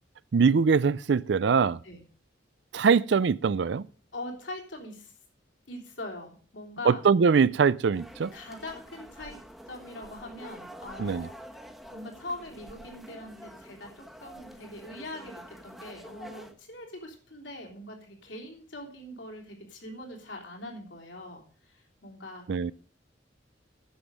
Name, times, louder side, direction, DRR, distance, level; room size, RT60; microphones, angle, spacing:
voice 1, 0.3-1.8 2.7-3.8 6.9-8.3 11.0-11.3 22.5-22.7, right 5 dB, 65° right, 0.4 m, -22 dB
voice 2, 4.1-5.1 5.7-7.1 8.3-11.3 11.9-22.5, left 1 dB, 75° left, 3.5 m, -42 dB
sound 1, 7.9-16.5, equal, ahead, 1.2 m, -47 dB
10.0 x 7.2 x 6.3 m
head